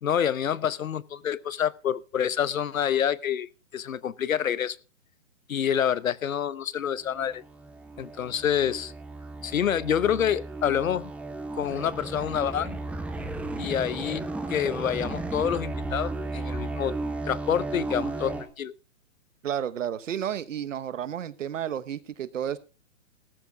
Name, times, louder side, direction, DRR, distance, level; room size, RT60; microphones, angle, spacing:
voice 1, 0.0-4.8 5.5-7.4 8.0-8.9 9.4-11.1 11.6-12.8 13.6-17.0 17.3-18.7, left 9 dB, 90° left, 20 dB, 0.9 m, -27 dB
sound 1, 7.0-18.5, right 2 dB, 5° right, 1.0 m, -34 dB
voice 2, 19.4-22.6, right 9 dB, 70° right, 16 dB, 1.2 m, -31 dB
17.5 x 13.5 x 2.3 m, 0.32 s
hypercardioid pair, 145°, 39 cm